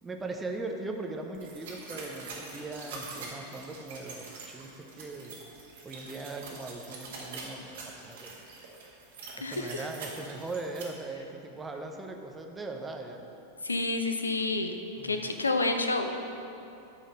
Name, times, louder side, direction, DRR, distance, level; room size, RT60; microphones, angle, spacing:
voice 1, 0.0-5.4 5.8-8.3 9.4-13.3 15.0-15.4, right 3 dB, 15° right, 3 dB, 0.7 m, -39 dB
sound 1, 1.3-10.8, right 3 dB, 60° right, 1.6 m, -44 dB
voice 2, 9.4-9.9 13.6-14.7 15.0-16.1, left 3 dB, 80° left, 6 dB, 0.5 m, -29 dB
9.4 x 4.1 x 6.5 m, 2.8 s
figure-of-eight pair, 90°, 0 cm